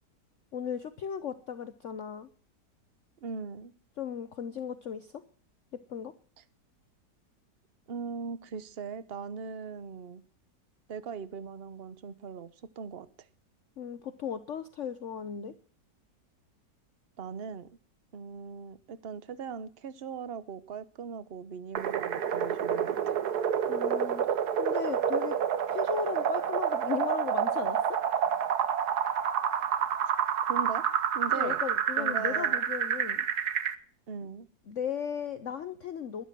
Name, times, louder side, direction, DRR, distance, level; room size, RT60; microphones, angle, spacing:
voice 1, 0.5-2.3 4.0-5.2 5.7-6.1 13.8-15.5 23.7-25.4 25.7-28.0 31.3-33.2 34.7-36.2, left 8 dB, 55° left, 11 dB, 1.0 m, -36 dB
voice 2, 3.2-3.7 7.9-10.2 10.9-12.5 12.8-13.1 17.2-17.7 18.1-23.0 30.5-30.9 31.1-31.6 32.0-32.7 34.1-34.5, right 6 dB, 40° right, 15 dB, 1.0 m, -39 dB
sound 1, 21.8-33.8, right 8 dB, 65° right, 1.5 m, -28 dB
12.5 x 11.5 x 7.5 m, 0.43 s
omnidirectional pair, 1.9 m